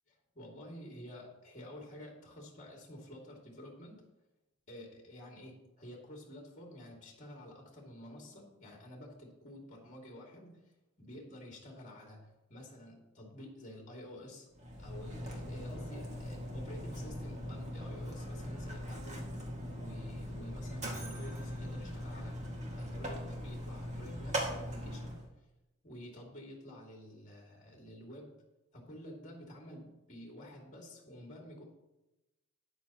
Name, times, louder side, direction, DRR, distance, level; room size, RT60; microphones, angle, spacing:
voice 1, 0.3-4.0 4.7-10.7 11.0-14.5 14.8-19.4 19.8-22.4 22.8-25.5 25.8-28.3 28.7-31.6, left 1 dB, 35° left, -1 dB, 2.5 m, -50 dB
Mechanisms, 14.5-25.3, equal, 35° right, 2.1 m, -40 dB
12.5 x 9.8 x 3.0 m, 0.96 s
head